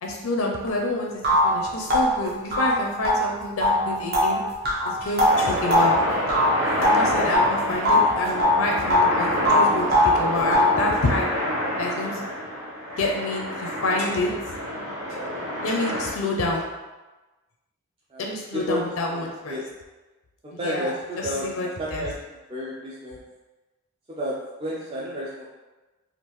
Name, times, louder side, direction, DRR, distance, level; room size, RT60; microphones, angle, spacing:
voice 1, 0.0-4.4 4.8-6.0 6.6-11.3 11.8-12.3 13.0-14.3 15.6-16.6 18.2-19.6 20.6-20.9 21.2-22.0, left 2 dB, 80° left, 0 dB, 0.5 m, -28 dB
sound 1, 0.7-0.8 1.2-7.5 7.8-9.2 9.4-10.8, left 1 dB, 45° right, 0.7 m, -21 dB
sound 2, 5.3-16.1, equal, 70° right, 1.2 m, -28 dB
voice 2, 18.1-19.7 20.4-22.1 22.5-23.2 24.2-25.4, equal, 25° right, -6 dB, 0.4 m, -32 dB
3.5 x 2.4 x 3.0 m, 1.2 s
head